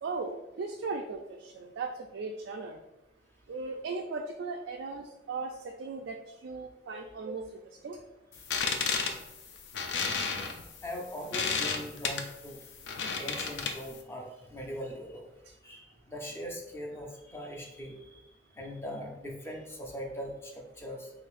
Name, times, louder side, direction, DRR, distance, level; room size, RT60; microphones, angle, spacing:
voice 1, 0.0-2.8 3.5-8.0, right 3 dB, 85° right, 2 dB, 0.3 m, -38 dB
sound 1, 8.3-14.0, left 5 dB, 75° left, 0.4 m, -32 dB
voice 2, 10.8-12.6 13.2-15.2 15.6-18.2 18.6-21.1, equal, 15° left, 1 dB, 0.5 m, -41 dB
3.9 x 3.3 x 2.4 m, 0.99 s
head